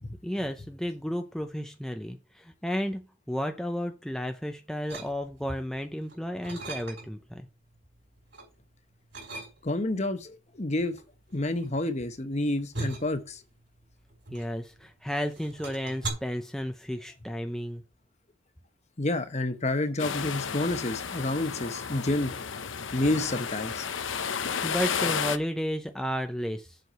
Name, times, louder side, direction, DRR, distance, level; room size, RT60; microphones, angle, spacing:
voice 1, 0.2-7.5 14.3-17.8 24.6-26.8, equal, ahead, 0.5 m, -33 dB
sound 1, 4.9-5.6 6.0-7.3 7.7-8.5 9.1-9.9 10.8-14.9 15.2-16.1, right 2 dB, 60° right, 4.6 m, -39 dB
voice 2, 9.6-11.0 11.3-13.4 19.0-22.3 22.9-23.9, left 2 dB, 35° left, 1.0 m, -29 dB
sound 2, 20.0-25.4, left 6 dB, 75° left, 0.8 m, -32 dB
7.8 x 4.7 x 6.7 m
head